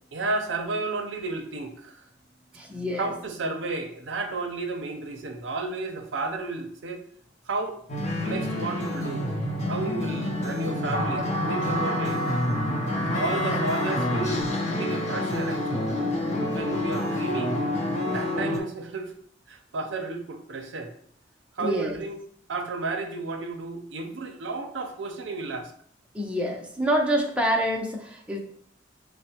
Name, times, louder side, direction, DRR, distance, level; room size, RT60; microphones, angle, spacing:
voice 1, 0.1-2.0 3.0-7.0 7.5-7.8 8.2-9.3 9.6-12.2 13.1-14.4 14.7-15.9 16.5-17.7 18.1-19.1 19.5-20.9 21.6-22.2 22.5-25.7, right 3 dB, 80° right, 5 dB, 0.6 m, -32 dB
voice 2, 2.5-3.1 10.9-11.8 13.5-14.0 21.6-22.0 26.1-28.4, equal, 5° right, -1 dB, 0.5 m, -28 dB
sound 1, 7.9-18.6, left 1 dB, 40° left, 0.6 m, -27 dB
6.1 x 2.1 x 2.8 m, 0.63 s
head